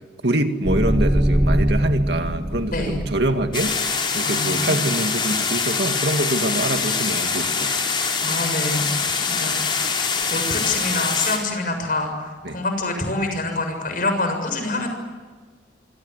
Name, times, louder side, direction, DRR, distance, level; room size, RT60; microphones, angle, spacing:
voice 1, 0.2-7.9 12.4-12.6, right 1 dB, 65° right, 6 dB, 2.1 m, -25 dB
sound 1, 0.6-3.8, right 1 dB, 20° right, 1.1 m, -22 dB
voice 2, 2.7-3.0 4.2-4.8 8.2-8.9 9.3-14.9, left 2 dB, 50° left, 6 dB, 7.0 m, -26 dB
sound 2, 3.5-11.4, left 5 dB, 25° left, 4.5 m, -24 dB
27.0 x 26.0 x 8.2 m, 1.4 s
head